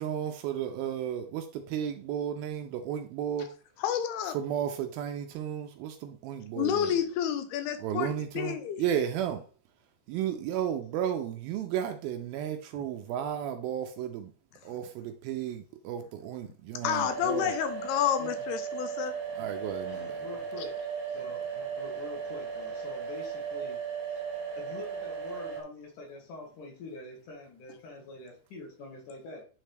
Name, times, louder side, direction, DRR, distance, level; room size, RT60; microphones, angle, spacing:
voice 1, 0.0-3.5 4.3-6.9 7.8-9.4 10.1-14.3 14.6-17.5 19.4-20.1, right 9 dB, 80° right, 2.3 m, -33 dB
voice 2, 3.8-4.4 6.6-8.9 16.8-19.1, left 9 dB, 80° left, 2.8 m, -30 dB
sound 1, 16.8-25.6, right 6 dB, 60° right, 1.7 m, -36 dB
voice 3, 19.9-20.8 21.1-24.0 24.6-29.4, left 2 dB, 60° left, 2.5 m, -45 dB
10.0 x 3.7 x 3.3 m
omnidirectional pair, 4.6 m